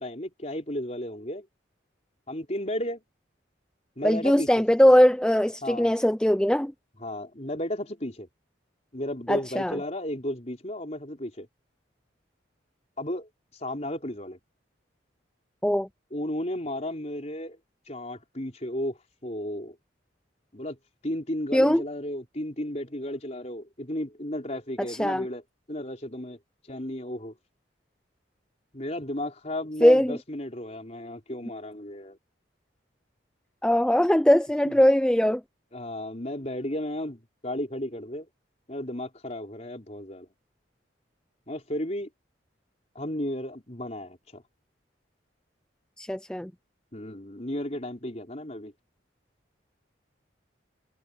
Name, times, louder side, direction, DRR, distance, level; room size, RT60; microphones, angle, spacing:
voice 1, 0.0-1.5 2.3-3.0 4.0-4.6 5.6-5.9 7.0-8.3 8.9-11.5 13.0-14.4 16.1-17.6 17.9-19.8 20.5-20.8 21.0-25.4 25.7-26.4 26.7-27.3 28.7-32.2 34.7-34.8 35.7-38.3 38.7-40.3 41.5-42.1 42.9-44.4 46.9-48.7, left 1 dB, 35° left, 4.4 m, -34 dB
voice 2, 4.0-6.7 9.3-9.8 15.6-15.9 21.5-21.8 24.9-25.2 29.8-30.2 33.6-35.4 46.0-46.5, equal, 5° left, 0.4 m, -21 dB
head